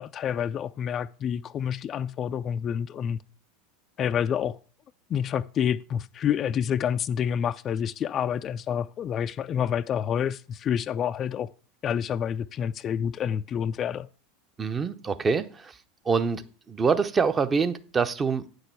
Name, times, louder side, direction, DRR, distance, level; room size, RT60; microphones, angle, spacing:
voice 1, 0.0-3.2 4.0-4.6 5.1-11.5 11.8-14.1, left 8 dB, 35° left, 0.4 m, -28 dB
voice 2, 14.6-15.7 16.1-16.4 16.7-18.5, right 5 dB, 25° right, 0.8 m, -25 dB
9.3 x 6.5 x 4.6 m
hypercardioid pair, 85°, 0 cm